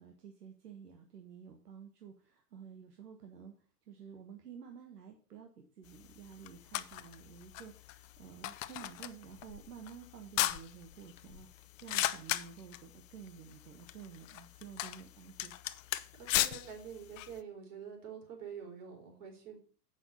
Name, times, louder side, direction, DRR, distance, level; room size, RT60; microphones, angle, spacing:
voice 1, 0.0-3.6 3.9-15.5, right 7 dB, 80° right, 3 dB, 1.6 m, -51 dB
sound 1, 5.9-17.4, left 14 dB, 55° left, 0.7 m, -39 dB
voice 2, 16.1-19.6, right 7 dB, 50° right, 2 dB, 4.4 m, -46 dB
8.1 x 5.9 x 5.6 m, 0.40 s
hypercardioid pair, 115°, 47 cm